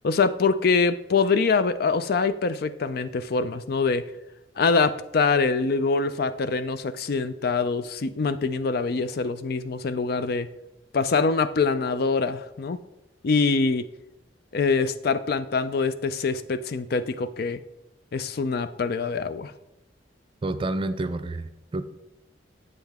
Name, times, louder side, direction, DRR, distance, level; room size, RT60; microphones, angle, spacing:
voice 1, 0.0-4.0 4.6-10.5 10.9-12.8 13.2-13.9 14.5-17.6 18.1-19.5, left 4 dB, 55° left, 13 dB, 0.4 m, -24 dB
voice 2, 20.4-21.8, right 2 dB, 30° right, 10 dB, 0.4 m, -29 dB
7.9 x 7.6 x 3.5 m, 0.91 s
head